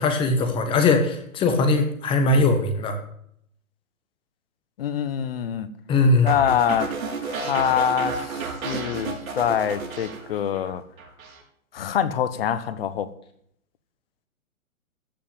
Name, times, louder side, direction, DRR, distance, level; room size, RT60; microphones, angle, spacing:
voice 1, 0.0-3.0 5.9-6.4, left 3 dB, 10° left, 6 dB, 1.4 m, -20 dB
voice 2, 4.8-5.7 6.2-6.9 7.2-10.8 11.7-13.1, left 9 dB, 40° left, 13 dB, 1.1 m, -25 dB
sound 1, 6.3-10.7 11.0-11.4, right 4 dB, 75° right, 4.8 m, -32 dB
14.5 x 5.7 x 8.8 m, 0.70 s
hypercardioid pair, 150°, 42 cm